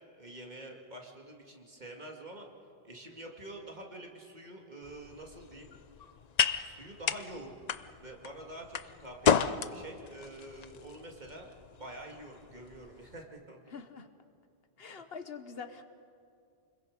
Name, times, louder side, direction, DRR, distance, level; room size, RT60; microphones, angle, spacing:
voice 1, 0.2-2.5 2.8-5.7 6.6-7.5 8.0-11.5 11.8-13.6, right 1 dB, 45° right, 1 dB, 2.4 m, -47 dB
sound 1, 4.8-13.2, left 7 dB, 50° left, 0.6 m, -34 dB
voice 2, 13.7-14.1 14.8-15.8, left 5 dB, 70° left, 9 dB, 1.3 m, -44 dB
29.0 x 21.5 x 5.3 m, 2.4 s
omnidirectional pair, 1.1 m